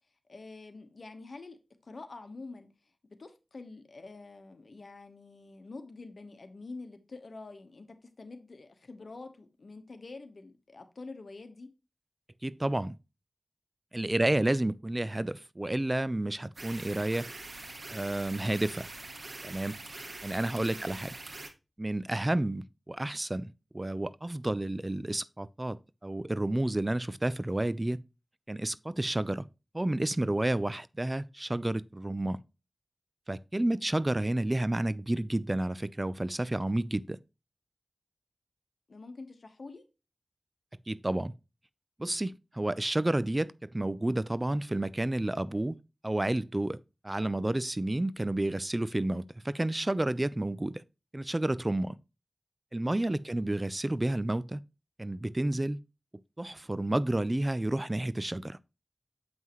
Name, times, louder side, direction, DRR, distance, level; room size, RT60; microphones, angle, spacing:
voice 1, 0.3-2.7 3.0-11.7 20.7-21.0 33.6-33.9 38.9-39.8 53.3-53.6, left 3 dB, 80° left, 1.2 m, -47 dB
voice 2, 12.4-13.0 13.9-17.3 17.9-18.9 19.4-21.1 21.8-28.0 28.5-29.4 29.7-32.4 33.3-37.2 40.9-41.3 42.0-45.8 46.0-50.8 51.1-52.0 52.7-54.6 55.0-55.8 56.4-58.6, right 1 dB, 30° right, 0.4 m, -30 dB
sound 1, 16.6-21.5, right 2 dB, 70° right, 1.4 m, -44 dB
7.8 x 5.5 x 3.0 m
wide cardioid pair, 55°, 0 cm